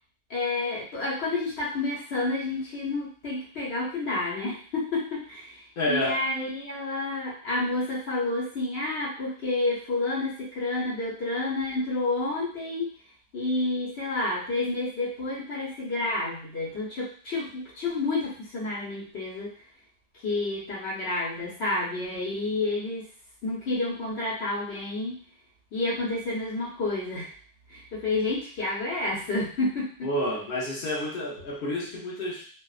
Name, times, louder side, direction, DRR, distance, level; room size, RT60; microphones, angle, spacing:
voice 1, 0.3-12.9 13.3-19.5 20.2-23.1 23.4-25.2 25.7-27.3 27.7-30.1, left 2 dB, 80° left, -6 dB, 1.2 m, -30 dB
voice 2, 5.8-6.2 30.0-32.4, left 1 dB, 60° left, -3 dB, 0.9 m, -29 dB
2.5 x 2.2 x 2.3 m, 0.43 s
omnidirectional pair, 1.1 m